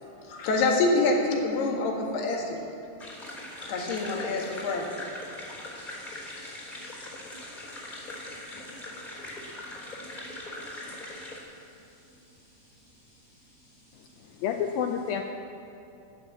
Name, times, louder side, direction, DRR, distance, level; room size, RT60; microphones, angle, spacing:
voice 1, 0.3-2.6 3.6-4.9, left 3 dB, 70° left, 0 dB, 3.7 m, -26 dB
sound 1, 3.0-11.4, left 1 dB, 10° left, 3.2 m, -41 dB
voice 2, 5.7-14.4, left 1 dB, 70° right, -2 dB, 1.6 m, -57 dB
voice 3, 13.9-15.3, left 8 dB, 90° left, 4 dB, 2.1 m, -30 dB
12.5 x 10.5 x 8.5 m, 2.8 s
omnidirectional pair, 4.9 m